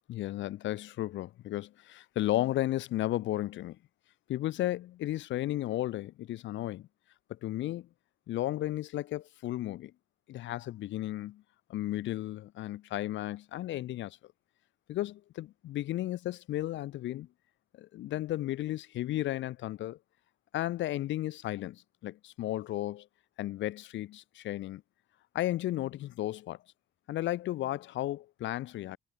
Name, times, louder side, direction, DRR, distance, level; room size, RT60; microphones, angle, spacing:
voice 1, 0.1-3.8 4.3-6.9 7.3-7.9 8.3-9.9 10.3-11.4 11.7-14.2 14.9-17.3 17.8-20.0 20.5-23.1 23.4-24.8 25.3-26.6 27.1-29.0, left 14 dB, 70° left, 0.5 m, -34 dB
cardioid pair, 90°, 20 cm